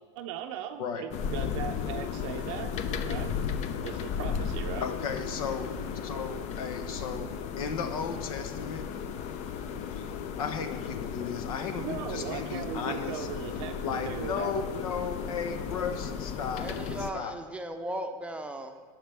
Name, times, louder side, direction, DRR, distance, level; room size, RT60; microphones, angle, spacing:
voice 1, 0.2-2.8 3.1-3.4 3.8-4.9 11.8-14.5, right 10 dB, 60° right, 5 dB, 0.6 m, -38 dB
sound 1, 1.1-17.1, left 7 dB, 40° left, 0.6 m, -35 dB
voice 2, 4.8-5.7 6.0-7.3 7.6-8.8 9.9-10.1 10.4-13.3 13.8-16.7 17.1-17.3, left 6 dB, 80° left, 7 dB, 1.2 m, -35 dB
voice 3, 16.6-18.8, right 1 dB, 5° right, 5 dB, 0.7 m, -37 dB
17.5 x 6.0 x 3.5 m, 1.5 s
supercardioid pair, 145°, 18 cm